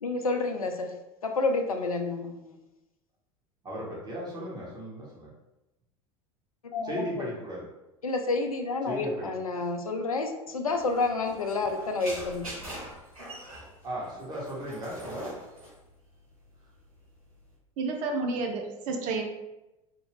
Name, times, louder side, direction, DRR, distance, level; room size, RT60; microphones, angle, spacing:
voice 1, 0.0-0.9 1.2-2.6 6.6-7.3 8.0-12.5, left 3 dB, 90° left, 5 dB, 0.4 m, -29 dB
voice 2, 3.6-5.3 6.8-7.7 8.9-9.3 13.8-15.3, equal, 25° right, -5 dB, 1.4 m, -36 dB
sound 1, 10.7-17.5, right 1 dB, 90° right, 1.0 m, -43 dB
voice 3, 17.8-19.2, right 3 dB, 50° right, 3 dB, 0.6 m, -30 dB
2.9 x 2.3 x 3.3 m, 0.98 s
figure-of-eight pair, 75°, 18 cm